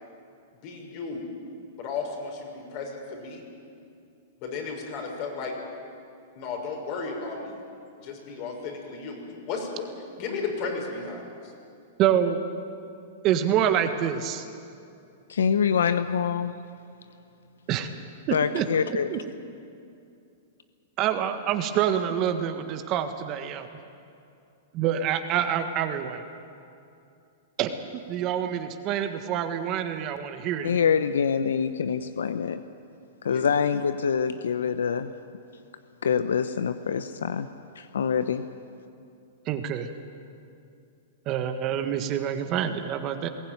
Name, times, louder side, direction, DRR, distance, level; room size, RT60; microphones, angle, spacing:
voice 1, 0.6-1.3 1.8-3.4 4.4-5.5 6.3-7.6 8.0-9.8 10.2-11.5 33.3-33.4, left 4 dB, 45° left, 1 dB, 6.2 m, -34 dB
voice 2, 12.0-12.4 13.2-14.4 17.7-17.9 18.3-18.6 19.1-19.2 21.0-23.7 24.7-26.2 27.6-30.8 39.5-39.9 41.2-43.3, right 9 dB, 40° right, 7 dB, 1.6 m, -26 dB
voice 3, 15.3-16.5 18.3-19.1 30.6-32.6 33.2-35.1 36.0-37.5 37.8-38.4, left 7 dB, 85° left, 11 dB, 0.8 m, -25 dB
21.0 x 17.0 x 9.5 m, 2.6 s
hypercardioid pair, 120°, 0 cm